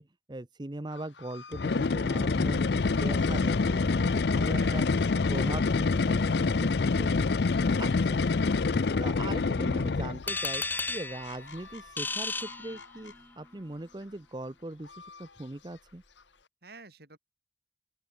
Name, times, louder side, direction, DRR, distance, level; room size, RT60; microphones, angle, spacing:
voice 1, 0.0-4.9 5.3-7.3 7.8-8.2 9.0-16.0, right 2 dB, 25° right, 0.8 m, -40 dB
sound 1, 0.9-16.5, left 5 dB, 85° left, 3.6 m, -52 dB
sound 2, 1.5-10.3, left 4 dB, 60° left, 0.5 m, -26 dB
voice 2, 3.9-5.5 16.6-17.2, right 2 dB, 60° right, 5.0 m, -51 dB
sound 3, 10.3-13.3, left 3 dB, 10° left, 0.9 m, -34 dB
open air
head